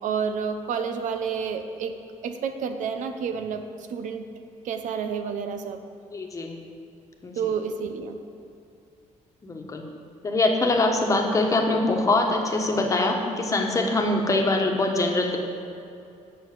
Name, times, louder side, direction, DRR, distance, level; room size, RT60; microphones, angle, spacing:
voice 1, 0.0-2.0 2.2-3.6 3.9-4.3 4.6-5.8 7.3-8.2, right 6 dB, 75° right, 8 dB, 0.8 m, -29 dB
voice 2, 6.1-6.6 7.2-7.3 9.4-9.8 10.2-15.4, left 2 dB, 25° left, 2 dB, 1.3 m, -23 dB
9.2 x 6.5 x 7.7 m, 2.6 s
cardioid pair, 140°, 13 cm